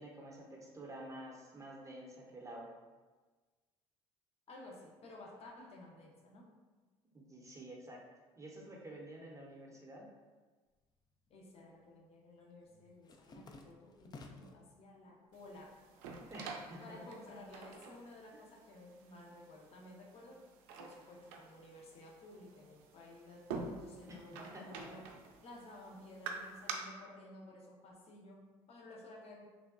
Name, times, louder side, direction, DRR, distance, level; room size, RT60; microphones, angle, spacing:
voice 1, 0.0-2.7 7.1-8.0 8.4-10.1 16.3-17.0 18.3-18.4 24.1-24.2 24.4-25.0, right 1 dB, 20° right, -2 dB, 0.6 m, -50 dB
voice 2, 4.5-6.5 11.3-15.7 16.8-20.4 20.8-25.1 25.4-29.5, left 1 dB, 45° left, -1 dB, 0.7 m, -54 dB
sound 1, 10.8-11.6 11.9-14.7 15.1-15.8 16.1-17.8, left 3 dB, 30° left, 0.3 m, -57 dB
sound 2, 15.3-26.7, right 5 dB, 70° right, 0.4 m, -49 dB
3.4 x 2.1 x 2.5 m, 1.3 s
hypercardioid pair, 65°, 14 cm